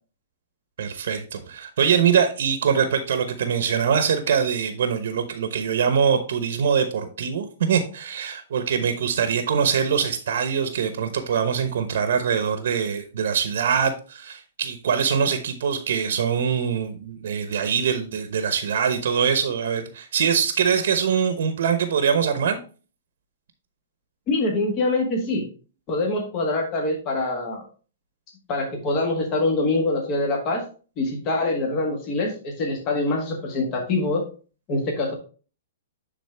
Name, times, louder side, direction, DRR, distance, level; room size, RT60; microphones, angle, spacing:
voice 1, 0.8-22.6, right 7 dB, 70° right, 9 dB, 0.9 m, -23 dB
voice 2, 24.3-25.5 25.9-27.6 28.5-30.7 31.0-34.3 34.7-35.2, left 2 dB, 35° left, 1 dB, 1.7 m, -24 dB
9.5 x 3.9 x 3.4 m, 0.36 s
hypercardioid pair, 140°, 0 cm